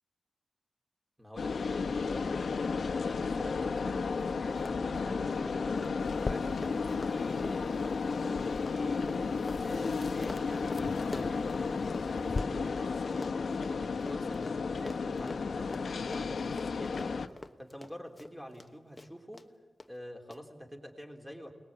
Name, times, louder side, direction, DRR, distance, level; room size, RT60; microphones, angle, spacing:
voice 1, 1.2-2.5 2.8-4.0 4.3-11.8 12.1-13.3 13.7-17.1 17.6-19.5 19.9-21.5, equal, 5° right, 2 dB, 3.4 m, -47 dB
sound 1, 1.4-17.3, left 4 dB, 80° left, 1.2 m, -33 dB
Run, 3.7-3.8 4.1-4.2 4.5-12.0 12.3-18.7 19.0-19.5 19.8-19.9 20.3-20.4, left 2 dB, 25° left, 1.1 m, -47 dB
sound 2, 6.0-12.4, left 3 dB, 45° left, 0.8 m, -43 dB
29.0 x 20.0 x 8.8 m, 1.4 s
wide cardioid pair, 110°, 0 cm